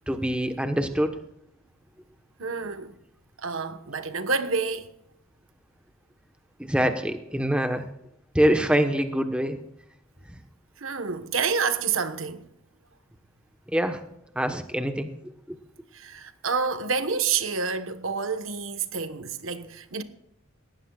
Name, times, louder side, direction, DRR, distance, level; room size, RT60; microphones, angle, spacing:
voice 1, 0.1-1.2 6.6-7.9 8.3-9.6 10.3-10.4 13.7-14.0 14.3-15.1 15.5-15.6, equal, 5° right, 1.1 m, -25 dB
voice 2, 2.4-3.0 3.4-4.9 10.8-12.5 15.9-20.0, right 5 dB, 75° right, 1.3 m, -28 dB
19.5 x 15.5 x 2.4 m
head